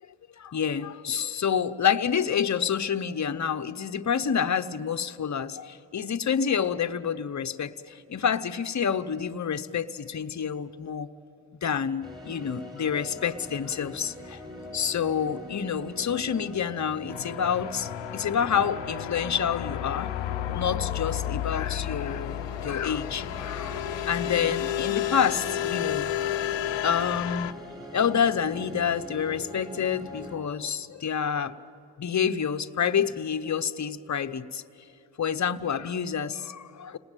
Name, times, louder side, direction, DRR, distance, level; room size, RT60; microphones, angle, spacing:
voice 1, 0.4-11.1 11.6-14.4 14.7-20.1 20.5-26.4 26.8-27.5 27.9-31.5 32.0-34.6 35.2-37.0, left 7 dB, 35° left, 10 dB, 0.9 m, -28 dB
sound 1, 12.0-30.4, left 1 dB, 10° right, 5.7 m, -42 dB
sound 2, 17.1-27.5, left 12 dB, 70° left, 0.7 m, -32 dB
29.5 x 19.5 x 9.1 m, 2.7 s
cardioid pair, 90°, 47 cm